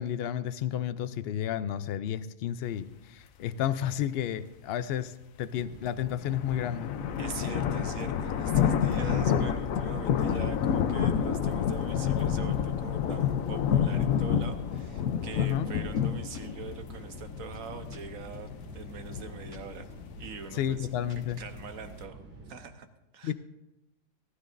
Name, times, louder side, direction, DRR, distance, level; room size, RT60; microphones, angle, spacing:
voice 1, 0.0-6.9 15.4-15.7 20.5-21.4 23.2-23.3, left 10 dB, 65° left, 14 dB, 0.6 m, -32 dB
sound 1, 5.5-22.6, right 2 dB, 60° right, 2.9 m, -48 dB
sound 2, 6.1-22.0, left 8 dB, 80° left, 1.1 m, -29 dB
voice 2, 7.2-19.9 20.2-20.9 21.4-22.2 22.5-22.9 23.1-23.3, right 6 dB, 80° right, 8 dB, 1.4 m, -43 dB
sound 3, 16.0-16.1 16.3-16.4 16.7-16.8 17.1-17.2 17.5-18.0 18.3-18.4 18.7-18.8 19.1-19.2 19.5-19.6 19.9-20.0 20.3-20.4 20.7-20.8 21.1-21.7, equal, 25° right, 2.0 m, -53 dB
18.0 x 13.0 x 2.6 m, 0.96 s
omnidirectional pair, 1.4 m